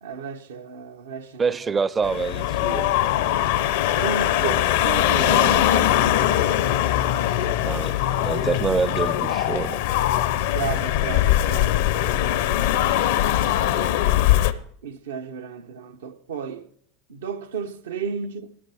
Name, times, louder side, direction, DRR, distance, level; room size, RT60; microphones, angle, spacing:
voice 1, 0.0-1.5 4.0-6.7 7.4-7.7 10.5-11.9 14.8-16.7 17.1-18.5, right 6 dB, 80° right, 0.8 m, -33 dB
voice 2, 1.4-2.9 7.7-9.8, right 5 dB, 25° right, 0.5 m, -26 dB
sound 1, 2.0-14.5, left 12 dB, 70° left, 0.6 m, -21 dB
14.5 x 12.0 x 3.4 m
hypercardioid pair, 95°, 0 cm